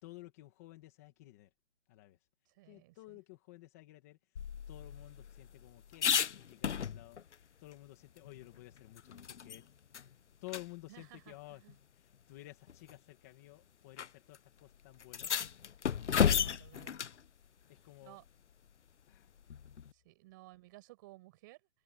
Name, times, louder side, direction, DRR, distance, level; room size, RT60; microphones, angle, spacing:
voice 1, 0.0-1.5 1.9-2.2 2.6-9.7 10.4-11.6 12.0-15.3 16.7-17.1 17.7-18.2 19.1-19.3, left 19 dB, 15° left, 2.1 m, -53 dB
voice 2, 2.5-3.2 10.9-11.8 16.4-17.0 18.0-18.2 19.9-21.7, right 19 dB, 20° right, 5.8 m, -57 dB
sound 1, 4.4-7.3 7.7-7.8 8.2-9.6 9.9-10.1 10.5-10.6 11.7-11.8 12.7-13.0 14.0-14.1 14.3-14.4 15.0-17.2 19.5-19.9, left 8 dB, 85° left, 0.9 m, -34 dB
hypercardioid pair, 175°, 34 cm